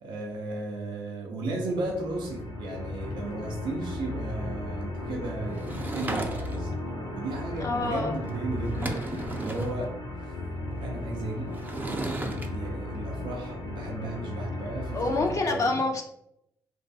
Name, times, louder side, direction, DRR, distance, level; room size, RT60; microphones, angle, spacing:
voice 1, 0.0-10.0 10.2-10.3 10.8-11.5 11.8-15.8, right 2 dB, 80° right, 0 dB, 0.5 m, -35 dB
sound 1, 1.6-15.3, left 2 dB, 80° left, 0.7 m, -36 dB
Sliding door / Wood, 5.6-6.8 8.3-8.4 8.6-9.8 11.5-12.5, right 2 dB, 25° right, 0.4 m, -34 dB
voice 2, 7.6-8.2 8.8-9.1 14.9-16.0, left 3 dB, 45° left, 2 dB, 0.4 m, -28 dB
2.3 x 2.3 x 2.6 m, 0.77 s
supercardioid pair, 50°, 8 cm